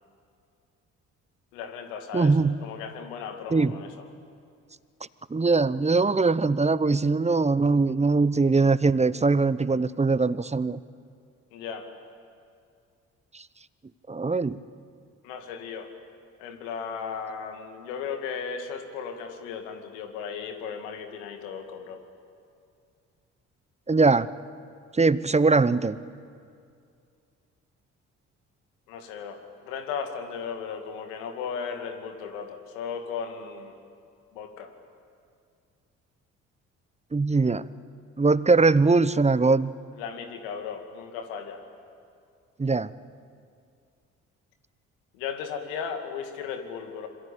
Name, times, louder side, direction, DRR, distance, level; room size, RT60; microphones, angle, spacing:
voice 1, 1.5-2.3 2.6-3.9 11.5-11.9 15.2-15.9 16.4-22.0 28.9-33.8 34.3-34.7 40.0-41.6 45.1-47.1, left 6 dB, 80° left, 5 dB, 2.5 m, -36 dB
voice 2, 2.1-2.6 3.5-3.8 5.3-10.8 13.3-13.4 14.1-14.6 23.9-24.3 24.9-26.0 37.1-37.7 38.2-39.7 42.6-42.9, right 3 dB, 15° right, 16 dB, 0.9 m, -21 dB
26.5 x 25.0 x 8.6 m, 2.3 s
hypercardioid pair, 45°, 38 cm